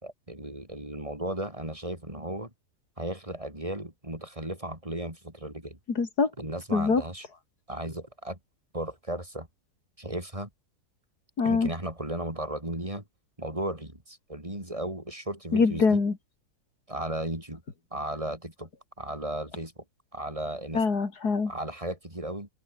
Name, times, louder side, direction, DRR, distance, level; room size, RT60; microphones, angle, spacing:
voice 1, 0.0-2.5 3.0-5.8 6.4-7.3 7.7-8.4 8.7-9.5 10.0-10.5 11.4-13.0 13.4-16.0 16.9-17.6 17.9-18.7 19.0-19.8 20.1-20.8 21.5-22.5, right 1 dB, 20° right, 6.3 m, -35 dB
voice 2, 5.9-6.3 6.7-7.0 11.4-11.7 15.5-16.1 20.7-21.5, left 4 dB, 75° left, 3.3 m, -24 dB
omnidirectional pair, 1.7 m